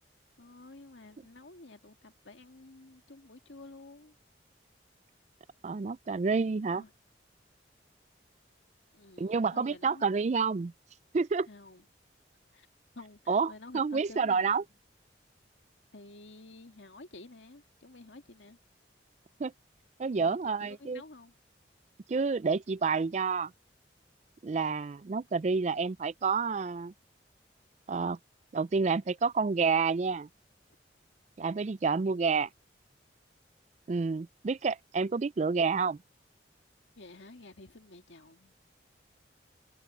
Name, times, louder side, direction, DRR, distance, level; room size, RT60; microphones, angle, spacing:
voice 1, 0.4-4.2 6.7-6.9 8.9-10.0 11.5-11.9 12.5-12.7 12.9-14.5 15.9-18.6 20.1-21.3 37.0-38.6, left 2 dB, 85° left, 2.0 m, -51 dB
voice 2, 5.6-6.8 9.2-10.7 11.1-11.5 13.3-14.6 19.4-19.5 20.0-21.0 22.1-23.5 24.4-26.9 27.9-28.2 28.5-30.3 31.4-32.5 33.9-36.0, right 4 dB, 40° right, 0.3 m, -29 dB
head